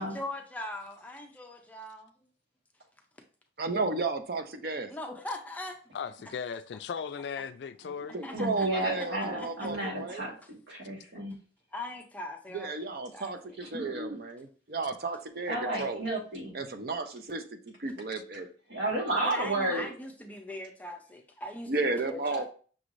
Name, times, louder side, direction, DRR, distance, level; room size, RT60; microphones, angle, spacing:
voice 1, 0.0-2.1 4.9-5.8 8.2-9.7 11.7-13.6 19.2-22.4, left 1 dB, 10° left, 0.5 m, -41 dB
voice 2, 3.6-4.9 8.1-10.2 12.5-16.1 16.5-18.5 21.7-22.4, right 3 dB, 55° right, 0.5 m, -33 dB
voice 3, 5.9-8.2, left 6 dB, 70° left, 0.3 m, -37 dB
voice 4, 8.3-10.3 10.7-11.3 13.6-14.2 15.5-16.6 18.7-19.9, right 1 dB, 80° right, 1.6 m, -32 dB
6.0 x 3.1 x 2.6 m
head